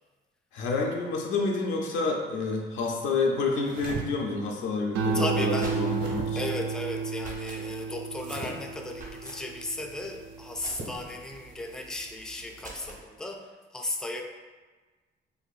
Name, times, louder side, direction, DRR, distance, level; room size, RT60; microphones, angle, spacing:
voice 1, 0.5-6.5, left 3 dB, 80° left, 0 dB, 0.5 m, -29 dB
sound 1, 3.5-4.0 5.5-6.3 8.1-8.5 10.5-10.9, right 3 dB, 60° right, 1.2 m, -39 dB
sound 2, 4.9-11.5 11.9-12.4, right 5 dB, 85° right, 0.5 m, -32 dB
voice 2, 5.1-5.9 6.4-14.2, left 2 dB, 5° left, 3 dB, 0.3 m, -35 dB
sound 3, 5.6-6.2 7.2-7.6 8.9-9.4 10.6-11.1 12.6-13.1, right 2 dB, 40° right, 0.8 m, -45 dB
4.2 x 2.6 x 2.4 m, 1.3 s
cardioid pair, 90°, 20 cm